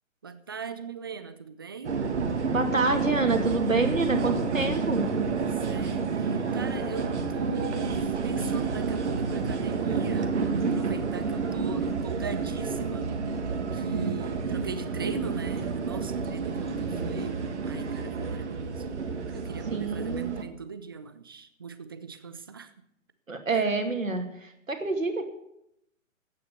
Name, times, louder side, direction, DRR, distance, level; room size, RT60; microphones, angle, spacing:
voice 1, 0.2-2.0 5.3-13.1 13.7-17.4 17.7-18.9 19.3-22.7 23.5-23.7, right 5 dB, 20° right, 12 dB, 0.5 m, -39 dB
sound 1, 1.8-20.4, right 4 dB, 60° right, 1.8 m, -30 dB
voice 2, 2.5-5.1 13.9-14.1 19.7-20.4 23.3-25.3, right 3 dB, 75° right, 5 dB, 2.5 m, -27 dB
14.5 x 9.4 x 6.6 m, 0.78 s
figure-of-eight pair, 130°, 40 cm